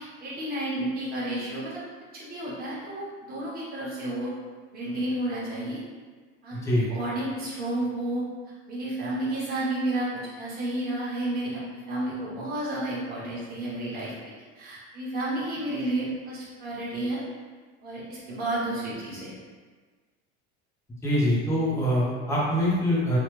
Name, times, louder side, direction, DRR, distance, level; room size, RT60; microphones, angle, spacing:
voice 1, 0.0-1.8 2.1-4.3 4.7-5.8 6.4-8.2 8.7-14.1 14.5-17.2 17.8-19.3, right 1 dB, 30° right, -8 dB, 1.1 m, -31 dB
voice 2, 6.5-6.9 21.0-23.2, equal, 10° left, -6 dB, 0.5 m, -24 dB
3.1 x 2.1 x 3.1 m, 1.4 s
cardioid pair, 150°, 29 cm